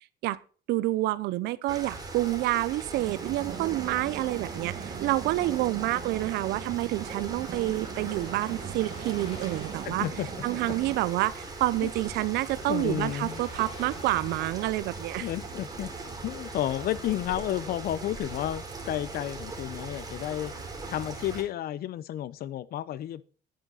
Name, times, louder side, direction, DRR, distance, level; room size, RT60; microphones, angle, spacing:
voice 1, 0.7-10.1 10.4-15.3, right 17 dB, 85° right, 0.7 m, -28 dB
sound 1, 1.7-21.4, right 3 dB, 20° right, 4.6 m, -40 dB
sound 2, 3.0-11.0, right 9 dB, 65° right, 2.2 m, -41 dB
sound 3, 7.0-14.5, left 3 dB, 30° left, 4.3 m, -50 dB
voice 2, 9.8-10.3 11.8-11.9 12.7-13.4 15.2-15.9 16.2-20.5 20.9-23.2, left 12 dB, 65° left, 0.8 m, -32 dB
10.5 x 9.1 x 4.0 m
cardioid pair, 110°, 17 cm